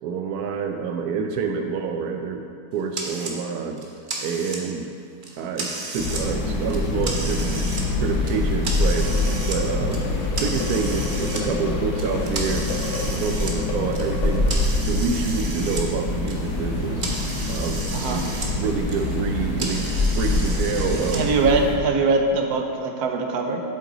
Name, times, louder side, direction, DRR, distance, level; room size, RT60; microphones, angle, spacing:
voice 1, 0.0-2.4 2.7-3.8 4.2-4.9 5.4-10.0 10.4-12.6 13.0-14.4 14.9-17.1 17.5-18.2 18.5-19.9 20.1-21.3, right 5 dB, 80° right, 4 dB, 0.8 m, -27 dB
sound 1, 2.9-3.4 3.8-4.8 5.2-6.2 6.6-7.8 8.2-9.6 9.9-11.4 12.0-15.9 16.1-18.5 18.8-21.2, right 2 dB, 45° right, 0.6 m, -33 dB
sound 2, 6.0-21.7, left 2 dB, 70° left, 1.8 m, -25 dB
sound 3, 8.8-14.9, left 3 dB, 85° left, 2.0 m, -35 dB
voice 2, 17.9-18.2 21.1-23.6, right 3 dB, 65° right, 4 dB, 1.1 m, -22 dB
7.8 x 7.7 x 3.9 m, 2.2 s
omnidirectional pair, 2.2 m